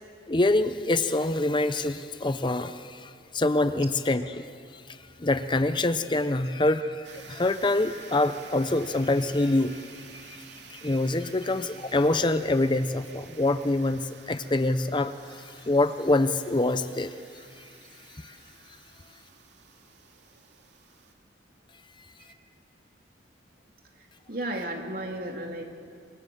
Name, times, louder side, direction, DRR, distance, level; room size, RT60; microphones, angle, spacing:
voice 1, 0.3-10.4 10.7-17.7 18.2-18.4, left 2 dB, 25° left, 11 dB, 0.7 m, -26 dB
sound 1, 7.0-21.1, right 6 dB, 70° right, 2.5 m, -50 dB
voice 2, 24.3-25.6, right 1 dB, 50° right, 1 dB, 3.5 m, -33 dB
28.0 x 25.0 x 7.2 m, 2.3 s
head